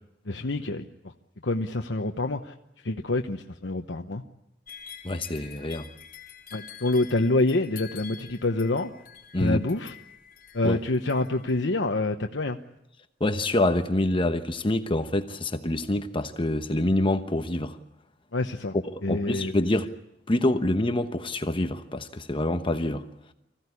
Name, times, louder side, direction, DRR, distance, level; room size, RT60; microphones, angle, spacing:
voice 1, 0.3-0.9 1.4-2.5 2.8-4.2 6.5-8.9 9.4-9.9 10.5-12.6 18.3-18.8 19.0-19.5, left 2 dB, 70° left, 1.1 m, -26 dB
sound 1, 4.7-11.7, left 8 dB, 50° left, 3.9 m, -47 dB
voice 2, 5.0-5.8 9.3-9.6 10.6-10.8 13.2-17.8 18.9-19.9 20.3-23.0, left 1 dB, 30° left, 1.1 m, -26 dB
25.0 x 16.0 x 9.8 m
head